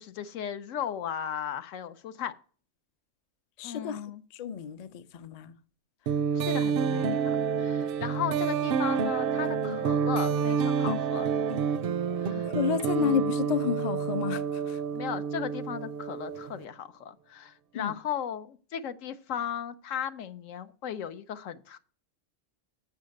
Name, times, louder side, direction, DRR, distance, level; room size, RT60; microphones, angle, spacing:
voice 1, 0.0-2.3 3.6-4.2 6.3-11.3 12.2-12.5 13.0-13.3 14.9-21.8, left 9 dB, 75° left, 1.1 m, -36 dB
voice 2, 3.6-4.0 4.3-5.5 12.4-14.8 17.7-17.9, left 8 dB, 50° left, 0.5 m, -31 dB
sound 1, 6.1-16.6, right 6 dB, 65° right, 0.6 m, -28 dB
7.2 x 5.7 x 6.4 m
omnidirectional pair, 1.4 m